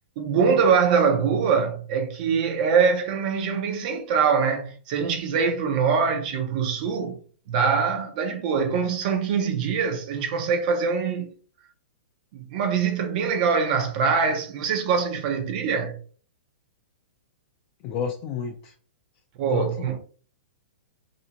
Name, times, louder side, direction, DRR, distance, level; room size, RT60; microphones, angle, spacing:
voice 1, 0.2-7.2 7.5-11.3 12.3-16.0 19.4-20.0, right 6 dB, 45° right, 0.6 m, -23 dB
voice 2, 17.8-18.7 19.5-20.0, left 7 dB, 35° left, 0.4 m, -31 dB
2.5 x 2.1 x 2.8 m
hypercardioid pair, 150°, 6 cm